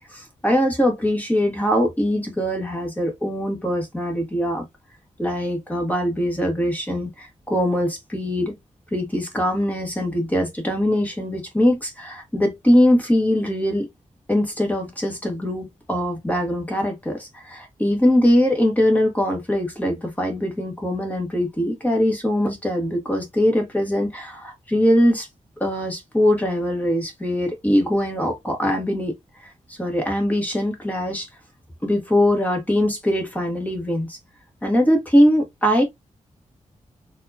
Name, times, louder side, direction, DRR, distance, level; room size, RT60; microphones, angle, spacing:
voice 1, 0.1-4.6 5.2-8.5 8.9-13.9 14.3-25.3 25.6-29.1 29.4-31.3 31.8-34.2 34.6-35.8, equal, 10° left, 1.6 m, -22 dB
4.7 x 2.8 x 2.6 m
wide cardioid pair, 155°, 13 cm